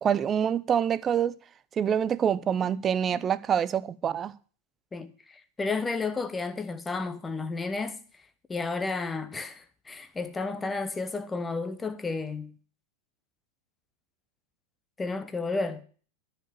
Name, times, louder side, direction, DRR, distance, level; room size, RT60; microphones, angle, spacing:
voice 1, 0.0-1.4 1.8-4.3, right 8 dB, 25° right, 0.6 m, -26 dB
voice 2, 5.6-8.0 8.5-12.5 15.0-15.8, left 3 dB, 15° left, 1.0 m, -32 dB
12.5 x 5.1 x 8.8 m
figure-of-eight pair, 90°, 0 cm